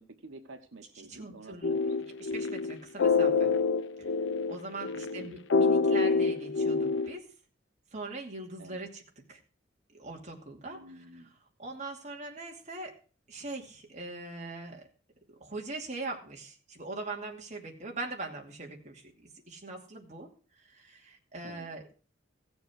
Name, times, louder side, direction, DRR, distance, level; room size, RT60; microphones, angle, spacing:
voice 1, 0.0-2.0 5.0-5.3 8.6-8.8 10.7-11.3 21.4-21.7, right 2 dB, 90° right, 6 dB, 1.2 m, -50 dB
voice 2, 1.0-1.8 2.1-3.5 4.5-7.3 7.9-9.0 9.3-9.4 9.9-11.2 11.6-12.9 13.3-14.9 15.3-20.3 20.6-21.9, right 2 dB, 35° right, 1 dB, 2.5 m, -41 dB
sound 1, 1.6-7.2, left 4 dB, 70° left, 0.7 m, -27 dB
15.5 x 7.1 x 6.3 m, 0.38 s
head